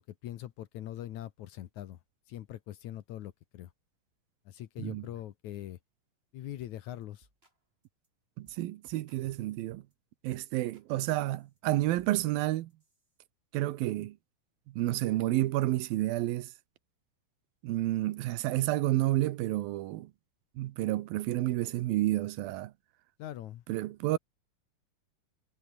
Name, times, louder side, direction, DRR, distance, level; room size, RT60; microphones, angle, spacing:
voice 1, 0.0-2.0 2.3-3.7 4.5-5.8 6.3-7.3 23.2-23.6, left 13 dB, 65° left, 2.1 m, -42 dB
sound 1, 6.6-6.8 7.0-7.6 7.8-8.1 8.4-8.6 8.9-9.9 10.3-10.9 11.1-13.2, right 1 dB, 15° right, 7.9 m, -67 dB
voice 2, 8.4-9.8 10.2-12.7 13.5-14.2 14.7-16.5 17.6-20.1 20.6-22.7 23.7-24.2, right 16 dB, 85° right, 2.7 m, -30 dB
omnidirectional pair, 4.2 m